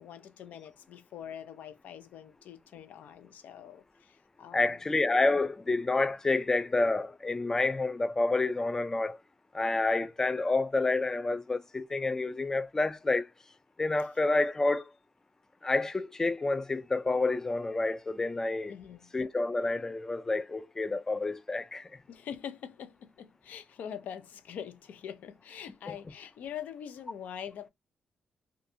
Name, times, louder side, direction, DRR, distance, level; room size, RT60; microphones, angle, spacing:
voice 1, 0.0-4.8 18.7-19.1 22.1-27.7, left 9 dB, 85° left, 0.4 m, -44 dB
voice 2, 4.5-9.2 9.5-13.3 13.8-14.9 15.6-18.7 19.1-21.9, left 3 dB, 20° left, 0.3 m, -29 dB
2.5 x 2.3 x 2.6 m
wide cardioid pair, 135°, 3 cm